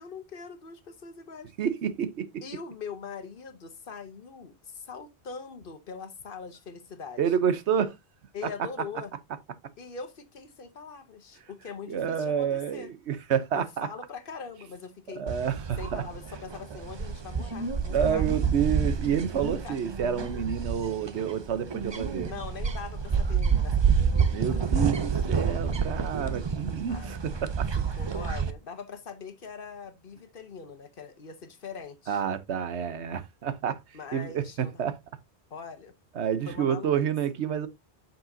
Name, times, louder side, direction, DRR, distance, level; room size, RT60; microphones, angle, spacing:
voice 1, 0.0-1.5 2.4-7.2 8.3-9.1 9.8-12.9 13.5-15.2 15.8-18.4 19.4-19.8 22.2-24.7 26.9-27.1 27.9-32.2 33.9-34.7 35.5-35.9 36.5-36.9, left 5 dB, 55° left, 1.1 m, -42 dB
voice 2, 1.6-2.4 7.2-7.9 11.9-13.9 15.2-16.0 17.9-22.3 24.3-27.7 32.1-33.8 34.1-35.0 36.1-37.7, right 8 dB, 80° right, 1.1 m, -29 dB
sound 1, 15.3-28.5, right 6 dB, 35° right, 0.5 m, -28 dB
7.4 x 6.0 x 2.6 m
omnidirectional pair, 1.1 m